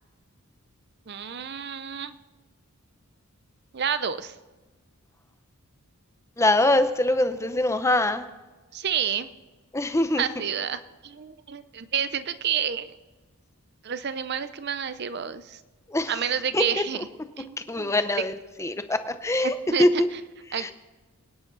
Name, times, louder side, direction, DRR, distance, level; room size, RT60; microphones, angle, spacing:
voice 1, 1.1-2.2 3.7-4.4 8.7-9.3 10.2-13.0 13.8-15.6 16.1-17.0 17.4-17.9 19.4-19.9 20.5-20.7, right 8 dB, 50° right, 13 dB, 0.6 m, -29 dB
voice 2, 6.4-8.2 9.7-10.3 15.9-16.2 16.5-16.6 17.7-18.3 18.6-20.1 20.5-20.7, left 1 dB, 15° left, 10 dB, 0.6 m, -23 dB
22.5 x 10.0 x 4.0 m, 1.2 s
head